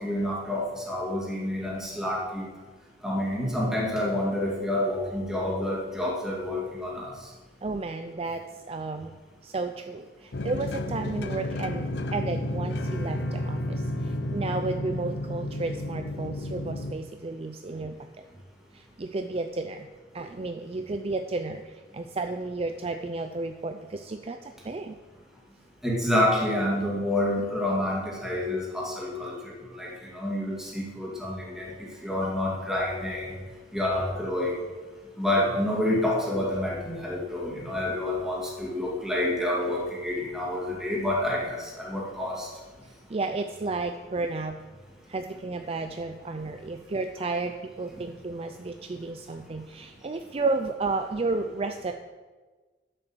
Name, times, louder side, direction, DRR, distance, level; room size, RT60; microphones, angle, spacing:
voice 1, 0.0-2.4 3.0-7.1 25.8-29.3 29.6-31.7 32.0-33.4 33.7-34.6 35.2-42.5, left 1 dB, 5° right, -4 dB, 2.5 m, -28 dB
voice 2, 7.6-9.1 9.4-18.2 18.7-19.9 20.1-25.0 43.1-44.6 45.1-51.9, right 3 dB, 35° right, 6 dB, 0.5 m, -32 dB
sound 1, 10.3-16.9, left 1 dB, 70° left, 0.7 m, -31 dB
9.2 x 7.7 x 6.2 m, 1.3 s
head